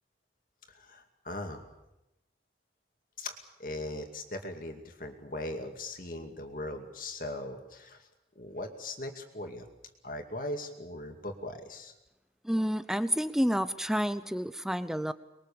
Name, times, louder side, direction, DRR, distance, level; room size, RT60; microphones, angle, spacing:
voice 1, 0.7-1.6 3.2-8.1 8.4-9.7 10.0-11.9, left 1 dB, 50° left, 4 dB, 2.4 m, -39 dB
voice 2, 12.4-15.1, equal, 5° right, 13 dB, 0.8 m, -29 dB
24.5 x 21.5 x 7.1 m, 0.93 s
head